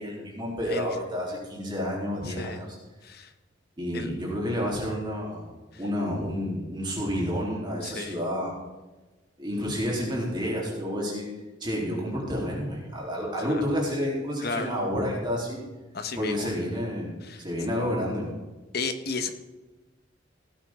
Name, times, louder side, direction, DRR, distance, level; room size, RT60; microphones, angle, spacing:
voice 1, 0.0-2.7 3.8-8.5 9.4-11.3 11.6-15.6 16.2-18.3, equal, 25° right, -3 dB, 3.5 m, -30 dB
voice 2, 2.2-2.6 3.0-3.3 3.9-4.1 5.7-5.8 7.8-8.2 13.4-13.6 14.4-14.7 15.9-16.5 17.2-17.4 18.7-19.3, left 4 dB, 55° left, 8 dB, 1.2 m, -33 dB
17.5 x 9.5 x 3.7 m, 1.2 s
head